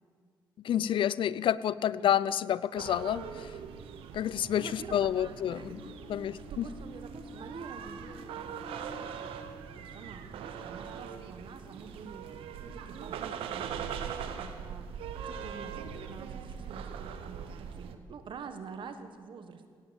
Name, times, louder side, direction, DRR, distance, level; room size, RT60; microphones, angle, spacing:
voice 1, 0.6-3.5 4.1-5.8 6.1-6.7, left 10 dB, 65° left, 18 dB, 0.5 m, -29 dB
sound 1, 2.8-18.0, right 7 dB, 85° right, 1.0 m, -41 dB
voice 2, 4.5-6.0 6.4-9.5 9.7-19.7, right 5 dB, 65° right, 8 dB, 1.4 m, -47 dB
sound 2, 5.6-11.2, left 1 dB, 5° left, 1.3 m, -50 dB
18.0 x 8.8 x 7.2 m, 2.1 s
supercardioid pair, 65°, 9 cm